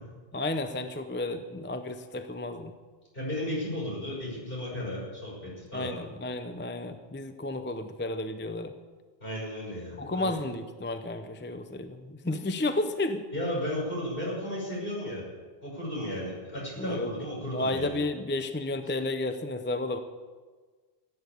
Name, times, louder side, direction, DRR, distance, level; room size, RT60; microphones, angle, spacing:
voice 1, 0.3-2.7 5.7-8.7 10.0-13.3 16.8-17.1 17.5-20.0, left 2 dB, 15° left, 8 dB, 0.6 m, -32 dB
voice 2, 3.1-5.9 9.2-10.4 13.3-15.2 15.6-18.0, left 1 dB, 60° left, -4 dB, 6.1 m, -34 dB
15.0 x 8.8 x 8.4 m, 1.4 s
omnidirectional pair, 1.1 m